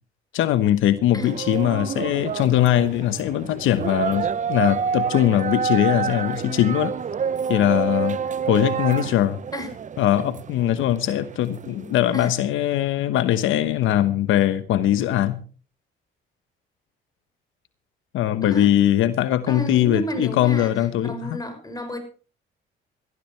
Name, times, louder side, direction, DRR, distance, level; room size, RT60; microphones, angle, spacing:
voice 1, 0.3-6.9 7.5-8.2 8.5-9.4 10.0-15.4 18.1-21.4, left 12 dB, 85° left, 1.1 m, -21 dB
sound 1, 1.3-12.2, right 6 dB, 40° right, 0.7 m, -28 dB
voice 2, 19.5-20.7 21.0-22.0, equal, 20° left, 6.3 m, -31 dB
19.0 x 13.5 x 3.3 m
cardioid pair, 90°, 20 cm